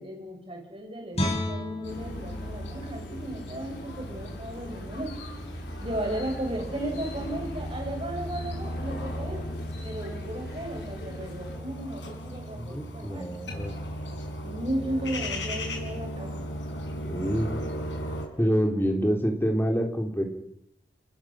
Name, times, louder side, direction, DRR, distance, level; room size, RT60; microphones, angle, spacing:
voice 1, 0.0-5.2 5.8-13.3 14.4-16.4 18.7-18.9, right 1 dB, 30° right, 2 dB, 6.5 m, -35 dB
Guitar, 1.1-4.3 4.7-4.9, left 1 dB, 35° left, 7.5 m, -34 dB
sound 1, 1.8-18.3, equal, 90° left, 5.4 m, -37 dB
sound 2, 1.9-11.6, left 1 dB, 60° left, 5.6 m, -42 dB
voice 2, 12.5-13.7 17.0-17.5 18.4-20.2, equal, 15° left, 2 dB, 3.6 m, -26 dB
29.5 x 19.0 x 6.4 m, 0.77 s
head